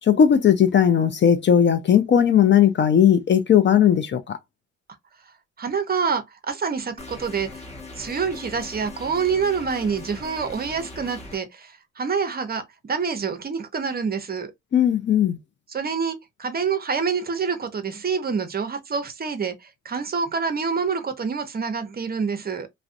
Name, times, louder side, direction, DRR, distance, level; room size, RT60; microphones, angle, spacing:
voice 1, 0.1-4.4 14.7-15.4, left 8 dB, 40° left, 0.4 m, -17 dB
voice 2, 5.6-7.6 8.0-14.5 15.7-22.7, right 5 dB, 30° right, 0.6 m, -27 dB
sound 1, 7.0-11.4, left 2 dB, 20° left, 1.0 m, -40 dB
2.5 x 2.1 x 2.5 m
cardioid pair, 90°, 30 cm